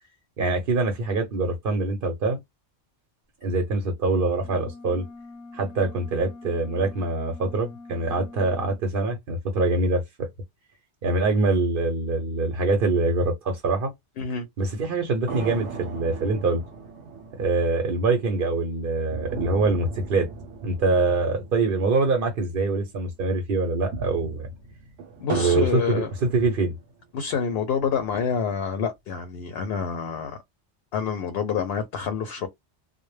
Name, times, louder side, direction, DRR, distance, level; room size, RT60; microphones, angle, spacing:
voice 1, 0.4-2.4 3.4-5.0 5.5-10.3 11.0-13.9 14.6-16.6 17.4-20.3 20.6-24.5 25.3-26.7, right 3 dB, 55° right, 0.8 m, -24 dB
sound 1, 4.4-8.8, left 3 dB, 15° left, 0.8 m, -44 dB
sound 2, 15.3-22.9 23.1-23.2 23.7-27.0 27.6-28.5, right 4 dB, 80° right, 1.0 m, -38 dB
voice 2, 25.2-26.1 27.1-30.4 30.9-32.5, left 6 dB, 65° left, 0.7 m, -27 dB
2.1 x 2.0 x 3.1 m
omnidirectional pair, 1.2 m